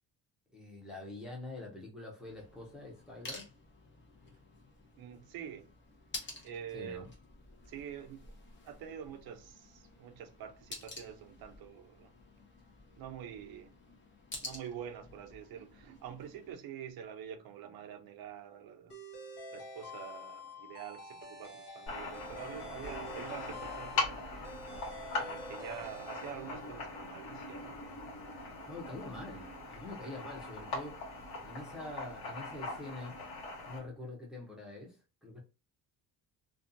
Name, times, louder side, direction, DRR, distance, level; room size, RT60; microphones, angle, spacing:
voice 1, 0.5-3.5 6.7-7.1 28.6-31.0 31.4-33.2 33.7-35.4, left 2 dB, ahead, 0.7 m, -45 dB
sound 1, 2.2-16.5, left 2 dB, 30° left, 0.8 m, -51 dB
voice 2, 5.0-5.7 6.4-7.1 7.7-8.3 8.6-12.1 13.0-13.8 14.4-19.0 19.5-24.5 25.1-27.8, right 9 dB, 60° right, 0.6 m, -46 dB
sound 2, 18.9-27.0, left 1 dB, 80° left, 1.3 m, -48 dB
sound 3, 21.9-33.8, left 3 dB, 65° left, 1.2 m, -41 dB
2.5 x 2.3 x 2.5 m
cardioid pair, 125°, 40 cm